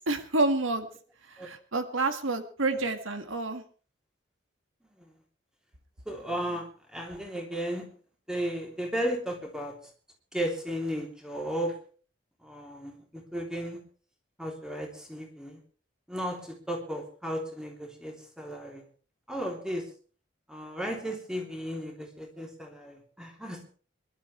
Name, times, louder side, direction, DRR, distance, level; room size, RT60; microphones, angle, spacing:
voice 1, 0.1-0.9 1.4-3.6, right 2 dB, 85° right, 7 dB, 1.9 m, -28 dB
voice 2, 6.1-7.8 8.3-9.7 10.3-11.7 12.4-13.8 14.4-15.6 16.1-18.8 19.3-19.9 20.5-23.6, equal, 5° right, 1 dB, 3.2 m, -34 dB
26.0 x 12.0 x 3.3 m, 0.40 s
head